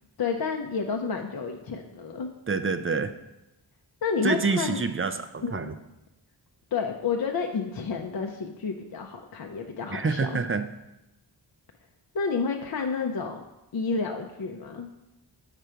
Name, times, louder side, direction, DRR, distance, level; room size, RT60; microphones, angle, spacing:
voice 1, 0.2-2.3 4.0-4.8 5.4-5.7 6.7-10.4 12.1-13.4 13.7-14.9, left 5 dB, 55° left, 2 dB, 0.6 m, -30 dB
voice 2, 2.5-3.1 4.2-5.7 9.9-10.7, right 4 dB, 30° right, 10 dB, 0.4 m, -27 dB
6.7 x 4.9 x 4.5 m, 0.93 s
wide cardioid pair, 60°, 44 cm